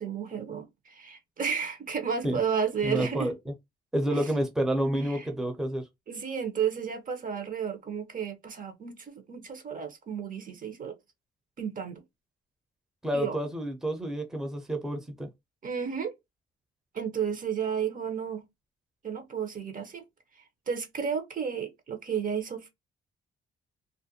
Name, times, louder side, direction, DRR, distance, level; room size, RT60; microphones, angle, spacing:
voice 1, 0.0-3.3 4.1-4.3 5.0-5.3 6.1-11.0 11.6-12.0 13.1-13.4 15.6-16.1 16.9-18.5 19.0-20.0 20.7-22.7, right 7 dB, 45° right, 0.8 m, -32 dB
voice 2, 2.8-3.5 3.9-5.8 13.0-15.3, right 1 dB, 5° right, 0.7 m, -29 dB
2.5 x 2.1 x 2.7 m
cardioid pair, 90°, 20 cm